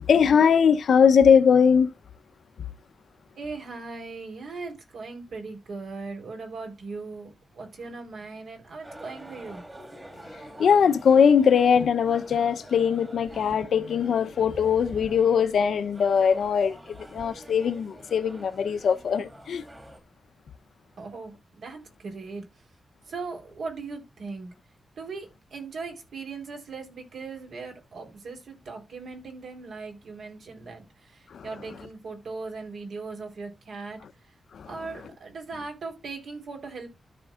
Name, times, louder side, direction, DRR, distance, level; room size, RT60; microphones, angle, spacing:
voice 1, 0.0-1.9 10.6-19.6 31.3-31.4 34.5-34.7, left 7 dB, 75° left, 0.8 m, -21 dB
voice 2, 3.4-9.6 21.0-22.4 23.1-24.5 25.0-34.0 34.7-36.9, right 4 dB, 70° right, 3.9 m, -39 dB
sound 1, 8.8-20.0, right 1 dB, 15° right, 2.0 m, -46 dB
13.5 x 5.3 x 2.5 m
wide cardioid pair, 155°, 0 cm